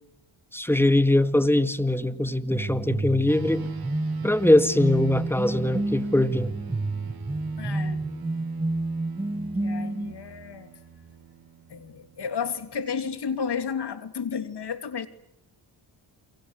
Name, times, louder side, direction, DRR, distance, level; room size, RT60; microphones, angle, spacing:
voice 1, 0.5-3.7 4.2-6.5, left 1 dB, 5° left, 12 dB, 1.9 m, -22 dB
sound 1, 2.5-10.1, right 2 dB, 10° right, 1.3 m, -29 dB
sound 2, 3.3-13.0, right 8 dB, 50° right, 4.8 m, -47 dB
voice 2, 7.6-8.0 9.6-10.7 11.7-15.1, left 6 dB, 55° left, 10 dB, 2.9 m, -32 dB
29.0 x 23.5 x 8.2 m, 0.81 s
supercardioid pair, 60°, 48 cm